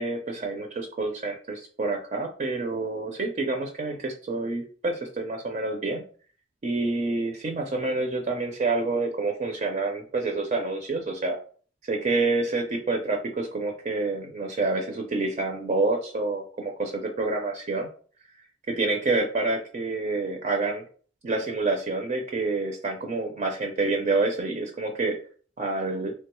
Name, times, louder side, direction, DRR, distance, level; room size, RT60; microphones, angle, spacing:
voice 1, 0.0-6.0 6.6-11.4 11.8-17.9 18.7-20.8 21.2-25.2 25.6-26.1, right 3 dB, 40° right, 3 dB, 0.4 m, -28 dB
3.3 x 2.2 x 2.9 m, 0.42 s
head